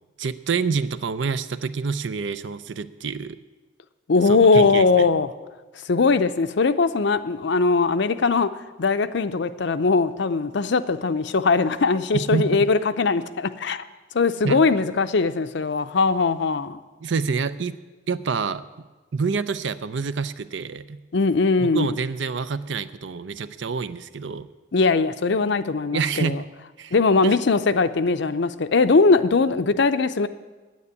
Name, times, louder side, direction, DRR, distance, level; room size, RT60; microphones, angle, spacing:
voice 1, 0.2-3.4 4.2-5.1 12.3-12.6 14.4-14.6 17.0-17.7 18.1-18.6 19.1-21.0 21.6-24.5 25.9-26.5 26.8-26.9 27.2-27.4, right 5 dB, 65° right, 14 dB, 0.5 m, -27 dB
voice 2, 4.1-5.3 5.9-8.5 8.8-13.8 14.1-16.8 21.1-22.0 24.7-26.4 26.9-30.3, left 4 dB, 60° left, 12 dB, 0.6 m, -20 dB
9.5 x 8.3 x 9.7 m, 1.3 s
head